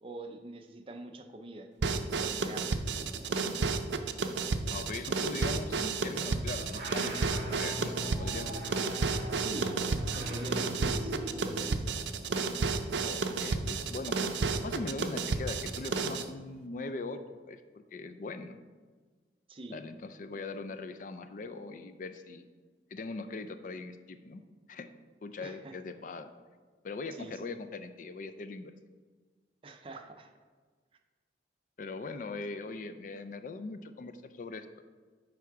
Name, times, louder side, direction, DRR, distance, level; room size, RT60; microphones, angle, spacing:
voice 1, 0.0-2.8 9.4-9.8 10.1-11.8 19.5-19.8 25.4-25.7 27.1-27.5 29.6-30.3, right 2 dB, 30° right, 5 dB, 0.5 m, -45 dB
sound 1, 1.8-16.3, right 4 dB, 85° right, 0.5 m, -32 dB
voice 2, 4.7-8.9 13.0-14.3 14.6-17.2 17.5-17.6 17.9-18.6 19.7-22.5 22.9-24.4 24.7-24.9 25.2-26.3 26.8-28.7 31.8-34.8, left 3 dB, 45° left, 9 dB, 0.4 m, -41 dB
sound 2, 6.1-11.6, equal, 50° right, 1.5 m, -41 dB
9.2 x 3.6 x 4.7 m, 1.5 s
head